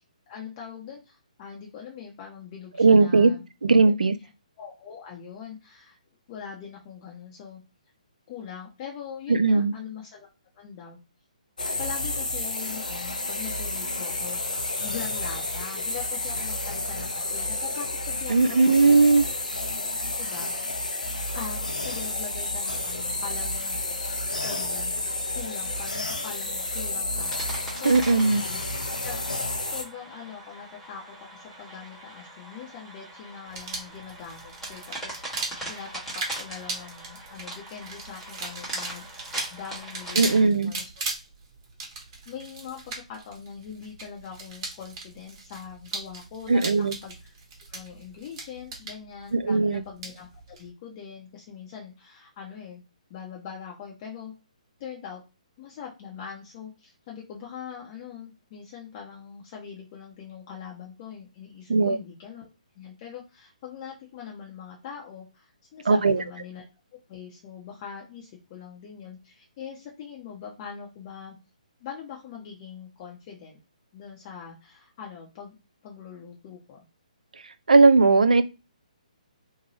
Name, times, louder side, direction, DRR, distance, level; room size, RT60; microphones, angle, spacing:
voice 1, 0.3-3.4 3.8-3.9 4.6-6.0 6.3-7.6 8.3-10.3 10.5-11.0 11.6-19.4 19.7-19.8 20.1-20.8 21.3-23.8 24.3-25.0 25.3-28.6 28.9-29.2 29.7-39.0 39.5-41.0 42.3-47.3 47.7-52.8 53.1-54.3 54.8-55.2 55.6-62.5 62.8-66.6 67.1-71.4 71.8-73.6 73.9-75.6 75.8-76.8, left 7 dB, 35° left, 0.8 m, -42 dB
voice 2, 2.8-3.3 3.6-4.1 9.3-9.7 18.3-19.3 27.8-28.4 40.2-40.7 46.5-46.9 49.3-49.8 61.7-62.0 65.9-66.2 77.7-78.4, right 3 dB, 80° right, 0.4 m, -18 dB
sound 1, 11.6-29.8, left 2 dB, 85° left, 0.7 m, -31 dB
sound 2, 27.2-40.5, right 1 dB, 5° left, 1.2 m, -42 dB
sound 3, 33.5-50.7, right 3 dB, 35° right, 1.0 m, -38 dB
2.8 x 2.2 x 3.0 m
figure-of-eight pair, 140°, 4 cm